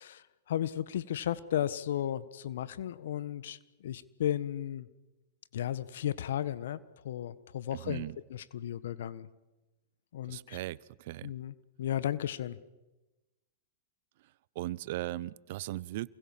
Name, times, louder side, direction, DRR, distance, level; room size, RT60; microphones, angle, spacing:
voice 1, 0.0-4.9 5.5-8.0 8.3-9.3 10.1-10.6 11.2-12.6, left 11 dB, 70° left, 15 dB, 1.5 m, -34 dB
voice 2, 7.8-8.2 10.3-11.3 14.5-16.1, right 16 dB, 60° right, 22 dB, 0.8 m, -38 dB
28.5 x 21.0 x 7.5 m, 1.0 s
hypercardioid pair, 100°, 0 cm